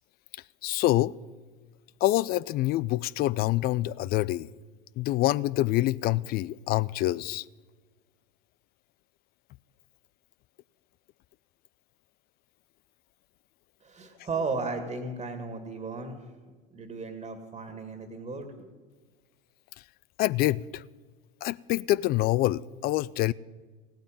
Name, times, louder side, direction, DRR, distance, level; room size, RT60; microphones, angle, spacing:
voice 1, 0.6-1.1 2.0-4.5 5.0-7.4 20.2-20.8 21.4-23.3, left 16 dB, 35° left, 0.4 m, -26 dB
voice 2, 13.8-16.3 16.7-18.7, right 4 dB, 20° right, 2.1 m, -35 dB
16.5 x 8.9 x 8.9 m
hypercardioid pair, 85°, 29 cm